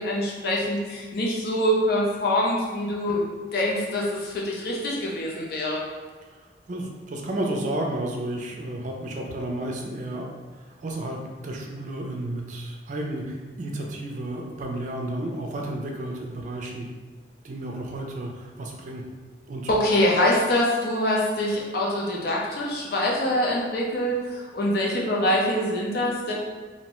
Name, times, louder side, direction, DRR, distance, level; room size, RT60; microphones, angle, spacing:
voice 1, 0.0-3.2 3.5-5.8 19.7-26.3, left 1 dB, 60° left, -3 dB, 0.6 m, -24 dB
voice 2, 6.7-10.3 10.5-16.9 17.4-19.0 19.5-19.7, right 1 dB, 45° right, 0 dB, 0.4 m, -32 dB
2.7 x 2.1 x 2.9 m, 1.4 s
head